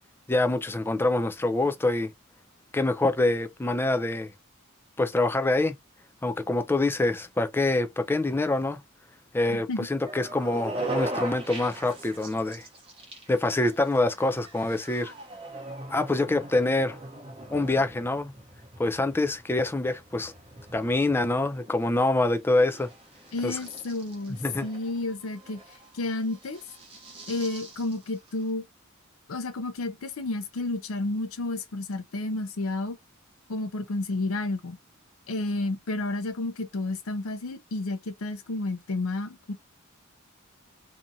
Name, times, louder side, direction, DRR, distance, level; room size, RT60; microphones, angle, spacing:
voice 1, 0.3-2.1 2.7-4.3 5.0-5.8 6.2-8.8 9.3-12.7 13.3-15.1 15.9-17.0 17.5-18.3 18.8-20.3 20.7-22.9 23.4-23.6 24.4-24.7, left 2 dB, 10° left, 0.3 m, -25 dB
voice 2, 9.5-9.9 23.3-25.6 25.9-26.6 27.3-28.6 29.3-33.0 33.5-34.8 35.3-39.5, left 2 dB, 80° left, 0.6 m, -31 dB
sound 1, 10.0-28.5, right 1 dB, 25° right, 0.9 m, -41 dB
2.7 x 2.4 x 2.7 m
head